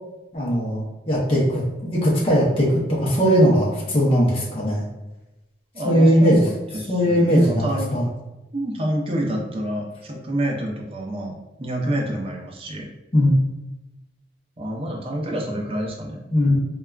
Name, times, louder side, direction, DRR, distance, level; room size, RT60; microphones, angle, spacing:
voice 1, 0.3-1.6 1.9-4.8 5.8-6.4 6.9-8.0 13.1-13.4 16.3-16.6, equal, 35° left, -5 dB, 0.7 m, -19 dB
voice 2, 5.7-7.9 8.5-12.9 14.6-16.3, right 1 dB, 35° right, 0 dB, 0.5 m, -28 dB
3.3 x 2.3 x 2.3 m, 1.0 s
head